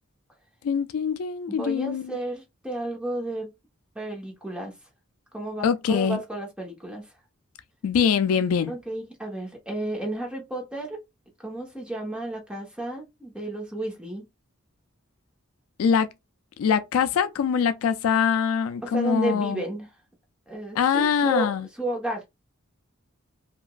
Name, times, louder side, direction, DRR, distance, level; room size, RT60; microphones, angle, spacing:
voice 1, 0.6-2.2 5.6-6.2 7.8-8.7 15.8-16.1 16.6-19.6 20.8-21.7, left 7 dB, 85° left, 0.3 m, -23 dB
voice 2, 1.5-3.5 3.9-4.7 5.3-7.1 8.7-11.0 11.4-14.2 18.8-19.9 20.5-21.5 21.8-22.3, right 1 dB, 5° right, 0.9 m, -32 dB
2.9 x 2.4 x 2.3 m
head